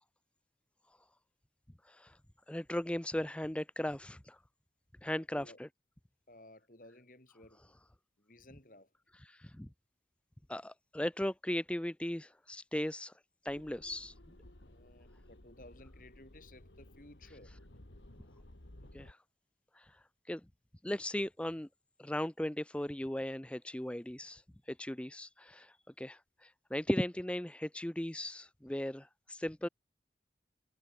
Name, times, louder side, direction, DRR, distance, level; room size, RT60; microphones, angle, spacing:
voice 1, 1.8-2.2 2.5-4.4 5.0-5.7 9.2-9.7 10.5-13.1 13.4-14.1 18.9-19.2 19.7-20.4 20.8-21.7 22.0-29.7, left 1 dB, 5° left, 0.4 m, -37 dB
voice 2, 5.1-5.6 6.3-7.7 8.2-8.9 14.7-17.5, left 1 dB, 50° left, 3.2 m, -57 dB
sound 1, 13.5-19.1, left 1 dB, 85° left, 2.6 m, -56 dB
head